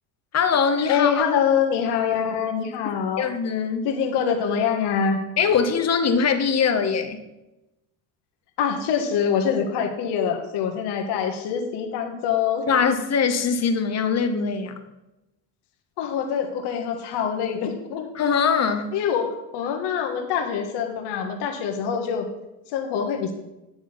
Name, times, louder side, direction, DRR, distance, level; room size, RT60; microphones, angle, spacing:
voice 1, 0.3-1.3 3.2-3.9 5.4-7.2 12.7-14.8 18.1-18.9, left 6 dB, 35° left, 8 dB, 1.1 m, -22 dB
voice 2, 0.9-3.3 3.8-5.2 8.6-12.7 16.0-18.1 18.9-22.3 22.7-23.3, left 7 dB, 70° left, 3 dB, 1.6 m, -24 dB
10.0 x 3.8 x 6.8 m, 0.95 s
supercardioid pair, 95°, 43 cm